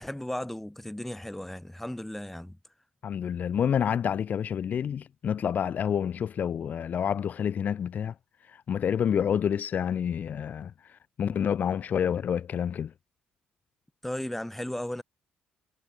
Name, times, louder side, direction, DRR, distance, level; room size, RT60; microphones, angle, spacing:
voice 1, 0.0-2.6 14.0-15.0, left 1 dB, 5° left, 2.3 m, -35 dB
voice 2, 3.0-8.1 8.5-12.9, left 8 dB, 60° left, 0.7 m, -28 dB
supercardioid pair, 60°, 3 cm